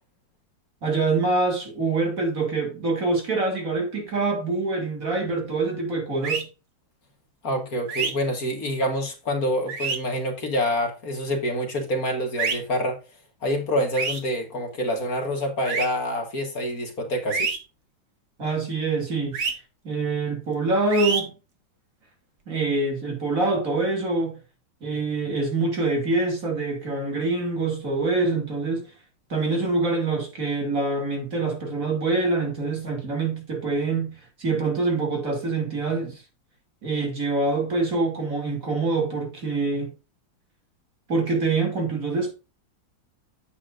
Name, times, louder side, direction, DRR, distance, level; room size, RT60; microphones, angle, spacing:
voice 1, 0.8-6.5 18.4-19.4 19.8-21.3 22.5-24.4 24.8-28.9 29.3-36.2 36.8-39.9 41.1-42.3, right 3 dB, 45° right, 2.9 m, -25 dB
sound 1, 6.2-6.4 7.9-8.1 9.7-10.0 12.4-12.6 14.0-14.2 15.7-15.9 17.3-17.6 19.3-19.5 20.9-21.2, right 5 dB, 60° right, 2.3 m, -26 dB
voice 2, 7.4-13.0 13.4-17.5, equal, 45° left, 2.2 m, -26 dB
9.5 x 8.4 x 2.5 m
omnidirectional pair, 2.1 m